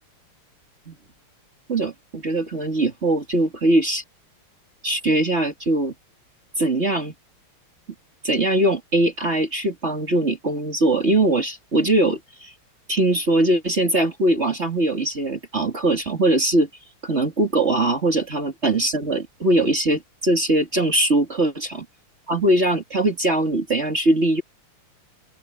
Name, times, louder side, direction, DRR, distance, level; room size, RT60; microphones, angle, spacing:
voice 1, 1.7-4.0 4.8-5.9 6.6-7.1 8.2-12.5 12.9-16.7 17.0-21.8 22.3-24.4, right 1 dB, 30° right, 3.0 m, -21 dB
open air
omnidirectional pair, 2.4 m